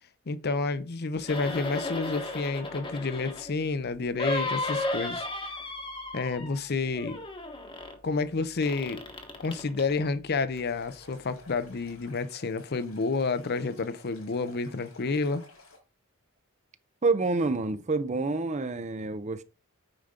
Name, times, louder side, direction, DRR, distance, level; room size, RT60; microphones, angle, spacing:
voice 1, 0.3-5.2 6.1-7.2 8.0-9.0 9.4-15.4, left 4 dB, 50° left, 0.6 m, -30 dB
sound 1, 1.2-3.5 4.2-6.7 6.9-8.0 8.6-9.9 10.6-10.7, left 2 dB, 25° left, 1.2 m, -34 dB
Stream, 10.5-15.8, left 3 dB, 90° left, 4.5 m, -53 dB
voice 2, 17.0-19.4, right 3 dB, 35° right, 0.6 m, -28 dB
9.0 x 5.1 x 3.7 m
head